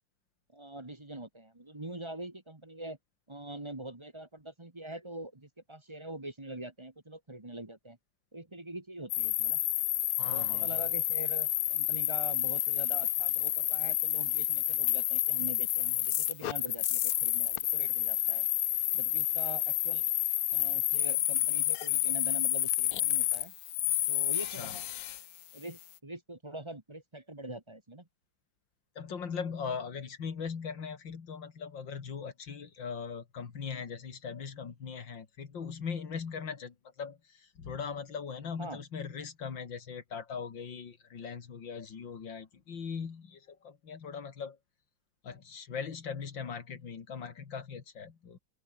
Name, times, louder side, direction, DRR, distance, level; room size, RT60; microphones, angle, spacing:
voice 1, 0.5-3.0 3.3-8.0 8.3-9.6 10.3-18.4 18.9-20.0 20.5-23.5 24.1-24.8 25.5-28.1 38.6-38.8, right 1 dB, 15° right, 1.6 m, -44 dB
sound 1, 9.1-25.2, left 14 dB, 65° left, 0.9 m, -30 dB
voice 2, 10.2-10.8 24.6-24.7 29.0-44.6 45.2-48.4, left 6 dB, 80° left, 2.9 m, -40 dB
open air
omnidirectional pair, 2.0 m